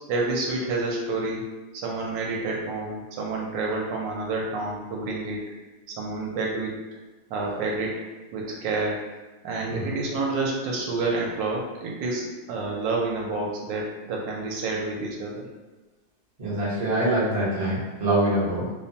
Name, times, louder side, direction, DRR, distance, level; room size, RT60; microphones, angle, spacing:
voice 1, 0.1-1.5 1.7-5.4 6.0-6.8 7.3-8.0 8.3-9.0 9.4-15.5, right 3 dB, 75° right, -2 dB, 1.2 m, -29 dB
voice 2, 16.4-18.7, right 1 dB, 45° right, -8 dB, 0.5 m, -24 dB
3.2 x 2.1 x 2.6 m, 1.2 s
omnidirectional pair, 2.0 m